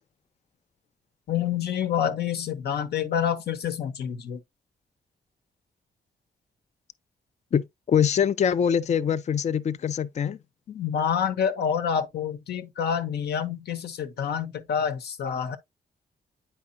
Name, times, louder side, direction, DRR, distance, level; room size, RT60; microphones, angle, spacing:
voice 1, 1.3-4.4 10.7-15.6, left 8 dB, 80° left, 1.0 m, -27 dB
voice 2, 7.5-10.4, left 8 dB, 45° left, 0.4 m, -24 dB
8.7 x 4.8 x 2.6 m
cardioid pair, 75°, 17 cm